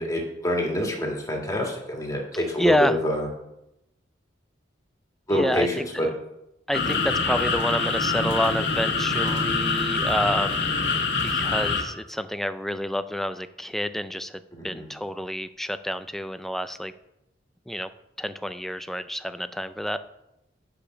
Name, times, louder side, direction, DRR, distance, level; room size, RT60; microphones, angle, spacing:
voice 1, 0.0-3.3 5.3-6.1 14.6-14.9, equal, 20° left, 0 dB, 1.8 m, -26 dB
voice 2, 2.3-3.0 5.3-6.1 6.7-10.8 11.2-16.9 17.7-17.9 18.2-20.0, equal, ahead, 11 dB, 0.4 m, -28 dB
sound 1, 6.7-11.8, left 4 dB, 70° left, 1.6 m, -25 dB
8.7 x 5.2 x 5.8 m, 0.87 s
head